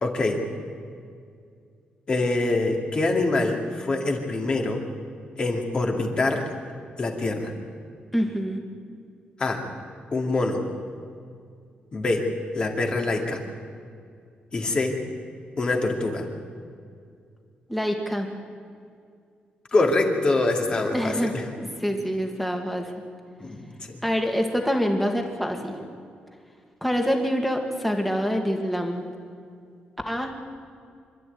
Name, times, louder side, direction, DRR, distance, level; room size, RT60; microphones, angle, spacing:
voice 1, 0.0-0.4 2.1-4.8 5.4-6.4 7.0-7.5 9.4-9.6 10.1-10.7 11.9-12.2 12.5-13.4 14.5-15.0 15.6-16.3 19.7-21.4 23.4-24.0, left 2 dB, 30° left, 2 dB, 2.4 m, -24 dB
voice 2, 8.1-8.6 17.7-18.3 20.9-22.9 24.0-25.8 26.8-29.0 30.1-30.4, equal, ahead, 3 dB, 2.1 m, -26 dB
26.0 x 12.5 x 9.4 m, 2.3 s
wide cardioid pair, 175°, 3 cm